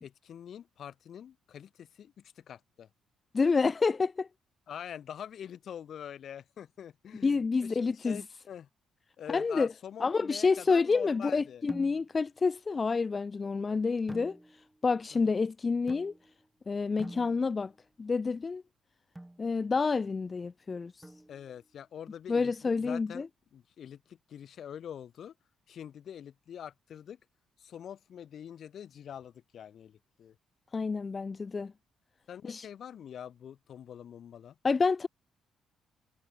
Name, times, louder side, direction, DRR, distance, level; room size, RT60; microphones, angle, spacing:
voice 1, 0.0-2.9 4.7-8.7 9.2-11.6 15.1-15.4 21.3-23.2 23.5-25.3 25.7-27.2 27.6-30.3 32.3-34.5, left 9 dB, 60° left, 6.1 m, -45 dB
voice 2, 3.3-4.3 7.2-8.2 9.3-9.7 10.0-14.4 14.8-16.1 16.7-17.7 18.0-18.6 19.4-21.1 22.3-23.3 30.7-31.7 32.5-32.7 34.6-35.1, left 4 dB, 30° left, 1.1 m, -28 dB
sound 1, 11.7-12.3 14.1-14.8 15.9-16.5 17.0-17.8 19.1-19.5 21.0-21.6, right 1 dB, 10° right, 3.9 m, -48 dB
cardioid pair, 90°, 0 cm